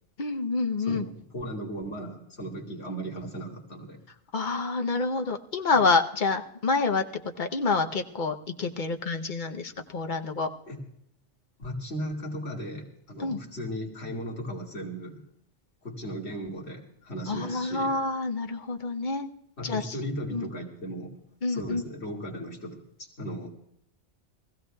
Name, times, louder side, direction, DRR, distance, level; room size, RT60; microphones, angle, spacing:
voice 1, 0.2-1.1 4.3-7.0 7.4-10.5 13.2-13.4 17.3-19.3 19.6-20.0 20.3-20.5 21.4-21.8, left 4 dB, 45° left, 6 dB, 0.9 m, -27 dB
voice 2, 0.9-4.0 10.7-10.8 11.6-15.2 15.8-17.9 19.6-21.1 21.5-23.5, equal, 65° left, -2 dB, 2.5 m, -36 dB
23.5 x 15.5 x 2.3 m, 0.75 s
omnidirectional pair, 1.2 m